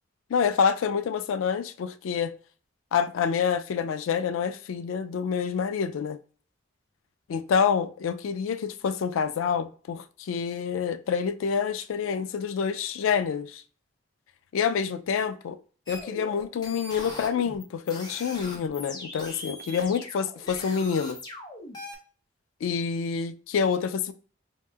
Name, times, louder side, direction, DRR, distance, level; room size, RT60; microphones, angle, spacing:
voice 1, 0.3-2.3 2.9-6.2 7.3-13.6 14.5-15.6 15.9-21.2 22.6-24.1, left 6 dB, 85° left, 0.3 m, -27 dB
sound 1, 15.9-21.9, left 1 dB, 20° left, 0.7 m, -41 dB
4.7 x 2.8 x 2.3 m
head